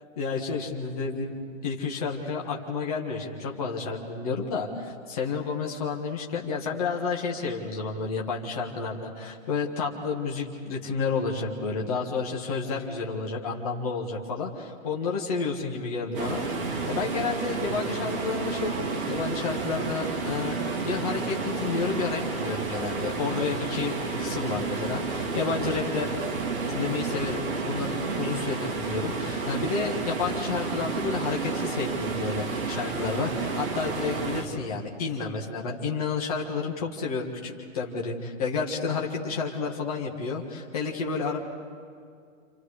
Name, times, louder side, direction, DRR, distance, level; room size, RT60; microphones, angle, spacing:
voice 1, 0.2-1.4 1.6-26.1 26.7-41.4, left 4 dB, 25° left, -1 dB, 1.7 m, -31 dB
sound 1, 16.1-34.4, right 4 dB, 40° right, 3.0 m, -31 dB
28.5 x 28.0 x 5.0 m, 2.3 s
hypercardioid pair, 180°, 41 cm